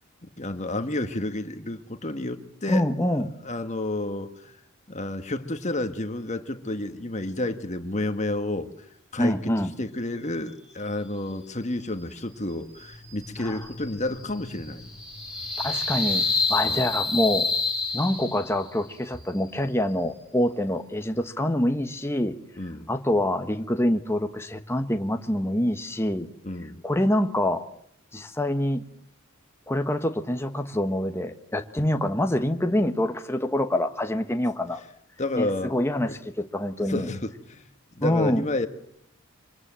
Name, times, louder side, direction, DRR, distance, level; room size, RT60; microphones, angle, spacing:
voice 1, 0.2-2.8 3.4-4.5 4.9-8.7 9.1-9.5 9.8-15.0 16.6-16.9 22.6-22.9 26.4-26.8 35.2-35.7 36.1-36.2 36.9-37.6 37.9-38.7, left 2 dB, 35° left, 8 dB, 1.6 m, -30 dB
voice 2, 2.7-3.3 9.2-9.7 13.4-13.6 15.6-17.5 17.9-22.4 22.9-26.3 26.8-27.7 28.1-28.8 29.7-34.8 35.3-37.1 38.0-38.4, left 1 dB, 10° left, 6 dB, 1.3 m, -26 dB
sound 1, 12.7-18.7, left 3 dB, 5° right, 6.8 m, -29 dB
26.0 x 24.5 x 7.6 m, 0.71 s
head